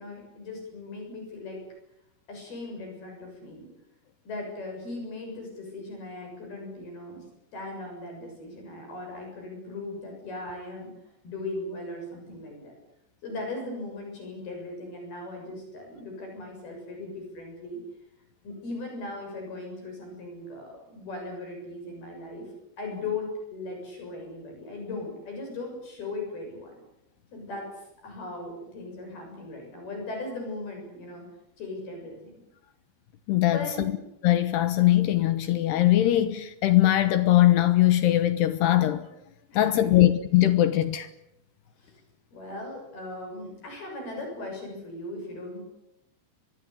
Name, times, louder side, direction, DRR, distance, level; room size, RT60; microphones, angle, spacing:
voice 1, 0.0-1.6 2.3-3.7 4.3-7.3 7.5-10.9 11.2-12.8 13.2-17.8 18.4-22.5 22.8-26.8 27.3-31.3 31.6-32.3 33.5-33.9 39.5-40.1 41.8-42.0 42.3-45.6, left 2 dB, 50° left, 8.8 m, -38 dB
voice 2, 33.3-33.9 34.2-39.1 39.5-41.1, left 14 dB, 70° left, 2.6 m, -21 dB
24.0 x 22.5 x 8.4 m
omnidirectional pair, 5.8 m